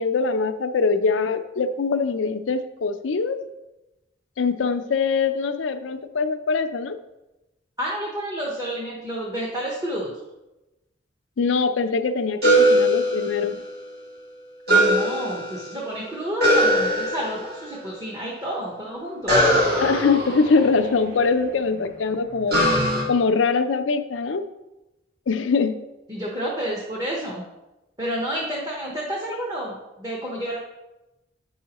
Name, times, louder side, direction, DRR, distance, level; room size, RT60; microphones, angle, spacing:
voice 1, 0.0-3.4 4.4-7.0 11.4-13.6 19.8-22.6 23.1-24.4 25.3-25.8, left 4 dB, 90° left, 9 dB, 0.5 m, -23 dB
voice 2, 7.8-10.1 14.7-19.4 26.1-27.4 28.0-30.6, equal, 20° right, -3 dB, 1.0 m, -30 dB
sound 1, 12.4-13.9 14.7-15.9 16.4-17.6 19.3-21.4 22.5-23.0, right 1 dB, 55° right, 1.8 m, -21 dB
8.7 x 5.5 x 2.9 m, 0.99 s
head